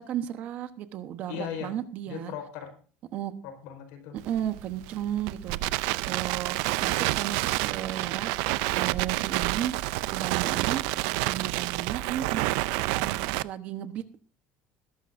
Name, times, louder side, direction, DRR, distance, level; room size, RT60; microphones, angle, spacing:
voice 1, 0.0-2.3 3.1-3.3 4.2-5.6 6.1-8.3 8.7-9.7 10.1-10.8 11.2-12.6 12.9-14.2, right 11 dB, 45° right, 10 dB, 1.1 m, -34 dB
voice 2, 1.3-1.7 2.1-2.7 3.4-4.2 11.3-11.6, left 8 dB, 85° left, 6 dB, 4.4 m, -38 dB
Crackle, 4.2-13.4, right 19 dB, 85° right, 0.5 m, -29 dB
20.5 x 12.0 x 2.6 m, 0.40 s
cardioid pair, 170°, 4 cm